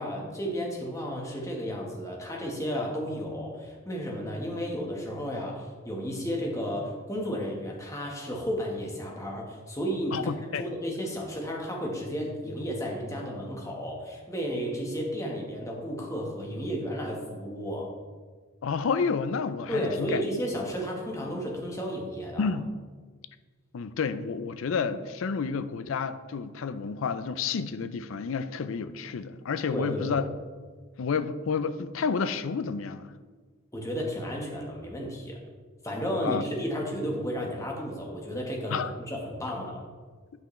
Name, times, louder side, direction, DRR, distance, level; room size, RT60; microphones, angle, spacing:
voice 1, 0.0-10.2 10.6-17.9 19.7-22.5 29.7-30.3 33.7-35.4 35.8-39.8, equal, 15° left, -1 dB, 1.2 m, -33 dB
voice 2, 10.1-10.6 18.6-20.2 22.4-22.7 23.7-30.3 31.0-33.1 36.2-36.4 38.7-38.9, left 5 dB, 70° left, 12 dB, 0.4 m, -30 dB
9.2 x 5.6 x 3.1 m, 1.5 s
head